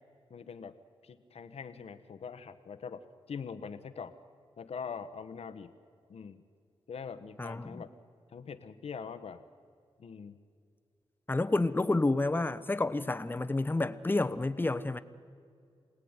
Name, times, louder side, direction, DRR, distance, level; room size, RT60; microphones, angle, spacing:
voice 1, 0.3-0.8 1.0-4.1 4.6-5.7 6.1-6.4 6.9-7.9 8.3-9.4 10.0-10.4, left 6 dB, 70° left, 9 dB, 1.2 m, -43 dB
voice 2, 7.4-7.8 11.3-15.0, left 2 dB, 20° left, 12 dB, 1.0 m, -29 dB
26.5 x 18.5 x 9.8 m, 2.3 s
wide cardioid pair, 100°, 11 cm